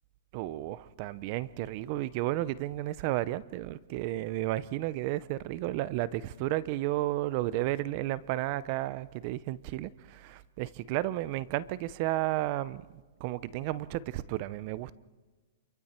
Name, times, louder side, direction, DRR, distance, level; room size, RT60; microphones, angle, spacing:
voice 1, 0.3-14.9, right 15 dB, 45° right, 18 dB, 0.6 m, -33 dB
28.0 x 23.0 x 4.4 m, 1.3 s
hypercardioid pair, 145°, 0 cm